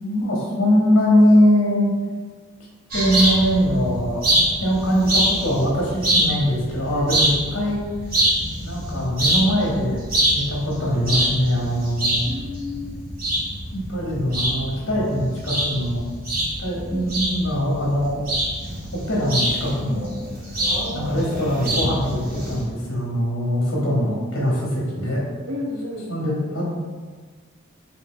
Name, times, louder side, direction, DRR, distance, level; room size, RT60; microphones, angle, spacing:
voice 1, 0.0-1.9 2.9-7.8 8.6-10.0 10.3-12.2 13.7-16.0 16.6-18.3 18.9-20.1 20.9-25.2 26.1-26.6, equal, 60° left, -4 dB, 1.0 m, -22 dB
sound 1, 2.9-22.6, right 1 dB, 45° right, 1.2 m, -25 dB
voice 2, 12.3-13.0 16.8-17.1 20.6-21.4 25.5-26.1, left 1 dB, 65° right, 0 dB, 0.5 m, -32 dB
4.3 x 2.5 x 3.7 m, 1.5 s
head